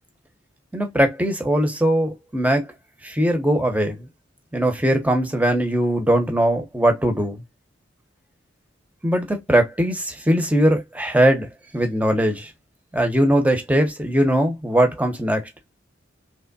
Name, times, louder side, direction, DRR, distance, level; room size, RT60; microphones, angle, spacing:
voice 1, 0.7-2.7 3.0-4.1 4.5-7.4 9.0-11.5 11.7-12.5 12.9-15.5, right 1 dB, 10° right, 0.9 m, -20 dB
3.4 x 3.2 x 4.1 m
head